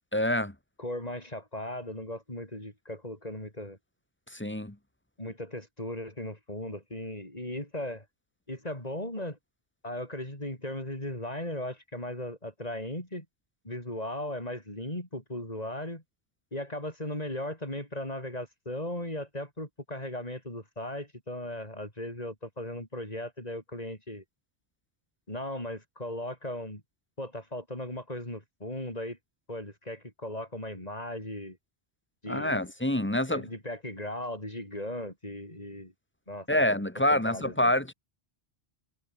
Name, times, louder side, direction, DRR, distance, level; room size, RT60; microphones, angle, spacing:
voice 1, 0.1-0.5 4.3-4.7 32.3-33.5 36.5-37.9, left 1 dB, 10° left, 1.6 m, -26 dB
voice 2, 0.8-3.8 5.2-8.0 8.5-9.4 9.8-13.3 13.6-16.0 16.5-24.2 25.3-26.8 27.2-29.2 29.5-31.6 32.2-32.7 33.3-35.9 36.3-36.7 36.9-37.7, left 1 dB, 35° left, 6.7 m, -37 dB
omnidirectional pair, 1.2 m